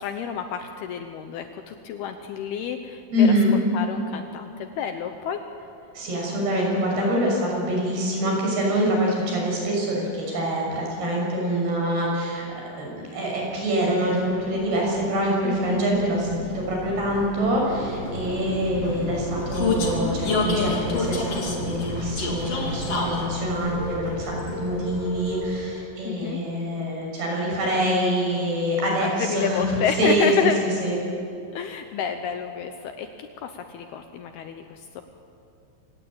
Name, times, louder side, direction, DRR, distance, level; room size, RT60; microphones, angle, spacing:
voice 1, 0.0-3.3 3.7-5.4 15.4-15.8 26.0-26.4 29.0-30.6 31.5-35.0, left 7 dB, 75° left, 7 dB, 2.6 m, -29 dB
voice 2, 3.1-3.6 5.9-30.5 30.8-31.0, equal, 60° right, -1 dB, 8.1 m, -25 dB
Vehicle, 14.1-25.7, left 2 dB, 35° left, 3.5 m, -30 dB
27.5 x 18.0 x 8.8 m, 2.5 s
omnidirectional pair, 5.2 m